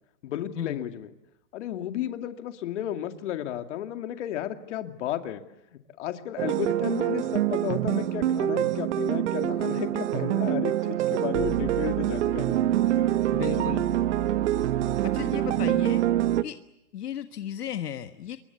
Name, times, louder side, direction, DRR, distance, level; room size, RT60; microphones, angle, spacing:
voice 1, 0.2-1.1 1.5-5.4 6.0-12.6 13.0-13.1 13.6-13.7, left 11 dB, 45° left, 8 dB, 2.4 m, -33 dB
sound 1, 6.4-16.4, right 12 dB, 45° right, 1.1 m, -25 dB
voice 2, 13.3-13.9 15.0-16.0 16.4-16.6 16.9-18.4, left 10 dB, 70° left, 9 dB, 1.6 m, -34 dB
27.5 x 22.5 x 8.4 m, 0.87 s
hypercardioid pair, 150°, 47 cm